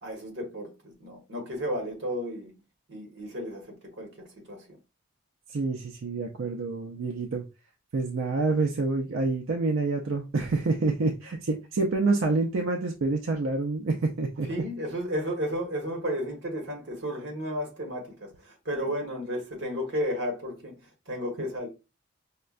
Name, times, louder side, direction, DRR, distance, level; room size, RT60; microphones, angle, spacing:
voice 1, 0.0-2.5 2.9-4.8 14.5-20.8 21.1-21.7, equal, 60° right, 1.2 m, -33 dB
voice 2, 5.5-7.4 7.9-14.5, right 3 dB, 85° right, 0.5 m, -27 dB
5.3 x 2.2 x 2.4 m
head